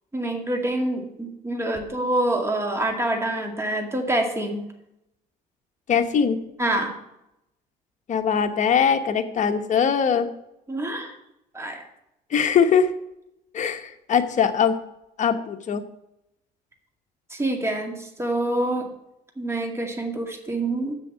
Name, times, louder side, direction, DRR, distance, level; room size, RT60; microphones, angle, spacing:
voice 1, 0.1-4.6 6.6-7.0 10.7-11.1 11.5-11.8 17.3-18.9 19.4-20.9, right 1 dB, 15° right, 3 dB, 2.1 m, -26 dB
voice 2, 5.9-6.4 8.1-10.3 12.3-12.9 13.5-14.8 15.2-15.8, left 7 dB, 45° left, 7 dB, 1.1 m, -21 dB
7.3 x 6.9 x 8.1 m, 0.83 s
cardioid pair, 110°, 17 cm